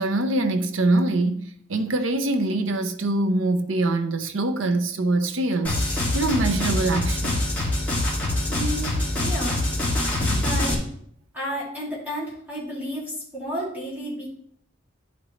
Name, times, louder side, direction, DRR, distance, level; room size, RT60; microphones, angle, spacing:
voice 1, 0.0-7.4, right 2 dB, 70° right, 0.7 m, -24 dB
sound 1, 5.6-10.7, left 1 dB, 10° left, 2.1 m, -24 dB
voice 2, 8.5-9.6 10.4-10.8 11.3-14.3, equal, 10° right, 2.6 m, -32 dB
11.0 x 5.1 x 3.1 m
head